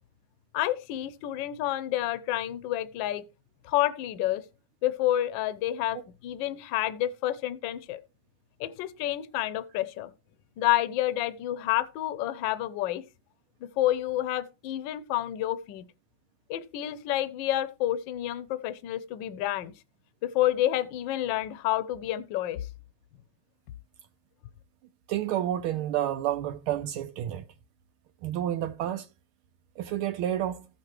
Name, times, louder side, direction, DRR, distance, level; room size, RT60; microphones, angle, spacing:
voice 1, 0.5-3.2 3.6-4.4 4.8-8.0 8.6-10.1 10.6-13.0 13.8-15.9 16.5-19.7 20.2-22.6, left 13 dB, 70° left, 1.2 m, -29 dB
voice 2, 25.1-27.4 28.2-29.1 29.8-30.7, right 11 dB, 80° right, 1.5 m, -30 dB
15.0 x 5.8 x 3.0 m
omnidirectional pair, 2.4 m